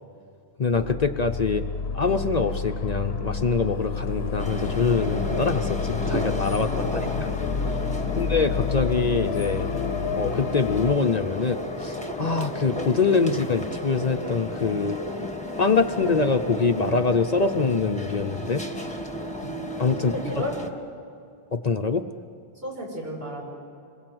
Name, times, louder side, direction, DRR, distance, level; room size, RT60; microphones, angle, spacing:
voice 1, 0.6-1.6 1.9-7.0 8.2-9.7 10.2-15.0 15.6-18.6 19.8-20.1 21.5-22.1, left 4 dB, 45° left, 6 dB, 0.8 m, -24 dB
sound 1, 0.7-11.0, left 6 dB, 75° left, 1.0 m, -29 dB
sound 2, 4.4-20.7, left 1 dB, 5° left, 1.5 m, -33 dB
voice 2, 6.7-7.3 8.0-8.2 19.3-19.5 20.0-20.5 22.6-23.5, equal, 65° right, -3 dB, 6.7 m, -34 dB
27.0 x 22.0 x 7.9 m, 2.4 s
omnidirectional pair, 1.1 m